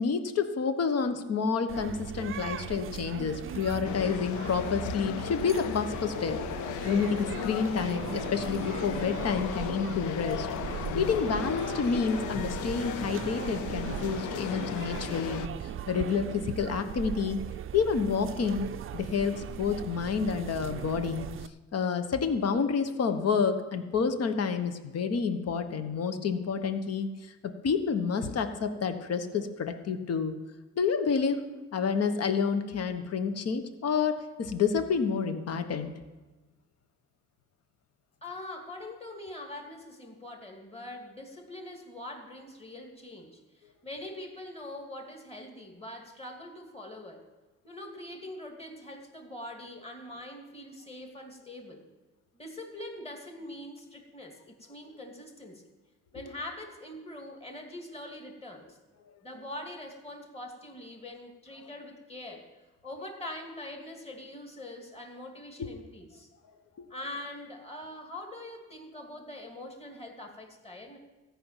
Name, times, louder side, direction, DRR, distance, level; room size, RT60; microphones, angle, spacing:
voice 1, 0.0-6.4 6.8-10.5 10.9-17.4 17.7-18.7 18.9-21.3 21.7-30.4 30.7-31.4 31.7-35.9 65.6-65.7 66.8-66.9, left 5 dB, 55° left, 9 dB, 1.2 m, -29 dB
sound 1, 1.7-21.5, right 10 dB, 45° right, 0.5 m, -39 dB
sound 2, 3.8-15.5, left 12 dB, 80° left, 0.5 m, -36 dB
voice 2, 38.2-47.2 47.6-51.8 52.3-55.6 56.1-58.8 59.2-62.5 62.8-66.3 66.9-71.0, left 1 dB, 20° left, 2 dB, 2.7 m, -43 dB
14.0 x 6.0 x 9.0 m, 1.2 s
cardioid pair, 90°, 30 cm